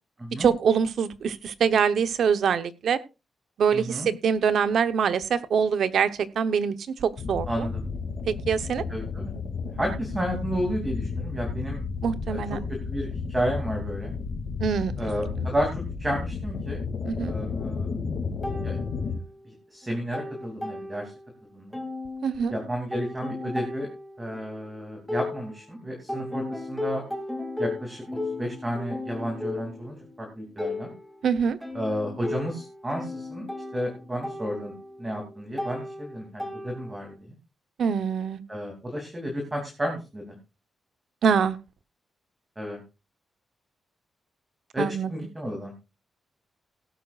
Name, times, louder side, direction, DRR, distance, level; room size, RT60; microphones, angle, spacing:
voice 1, 0.4-3.0 3.6-6.7 7.0-7.7 8.3-8.8 12.0-12.6 14.6-15.1 15.4-15.5 17.1-17.3 22.2-22.5 31.2-31.6 37.8-38.4 41.2-41.6 44.8-45.1, right 6 dB, 65° right, 12 dB, 0.9 m, -24 dB
voice 2, 3.7-4.1 7.5-7.8 8.9-9.3 9.8-11.8 12.3-14.1 15.0-16.8 17.3-17.9 18.6-18.8 19.4-21.1 21.5-21.8 22.5-23.9 24.2-27.0 27.6-28.0 28.4-30.9 31.7-33.4 33.7-34.7 35.0-37.3 38.5-40.3 42.6-42.8 44.7-45.7, equal, 15° right, 1 dB, 2.8 m, -32 dB
sound 1, 7.2-19.2, left 5 dB, 55° left, 2.6 m, -32 dB
sound 2, 18.4-19.5 19.8-21.4 21.7-25.7 26.1-37.1, left 2 dB, ahead, 2.5 m, -36 dB
17.5 x 11.0 x 2.5 m, 0.28 s
wide cardioid pair, 155°, 0 cm